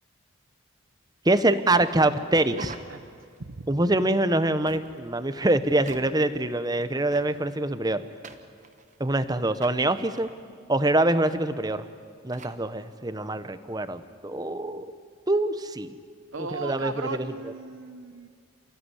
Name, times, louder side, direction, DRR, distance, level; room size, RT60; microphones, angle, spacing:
voice 1, 1.2-2.7 3.7-8.0 9.0-10.3 10.7-11.9 12.2-14.9 15.3-15.9 16.4-17.1, right 2 dB, 20° right, 12 dB, 0.9 m, -24 dB
voice 2, 2.4-3.1 3.4-3.7 16.3-18.3, right 3 dB, 65° right, 8 dB, 0.9 m, -37 dB
sound 1, 2.5-3.4 4.7-5.1 5.8-6.3 7.1-7.6 8.2-9.1 9.6-10.3 11.2-11.4 11.7-11.8 12.3-12.6, right 4 dB, 35° right, 1.3 m, -45 dB
28.5 x 15.5 x 10.0 m, 2.2 s
head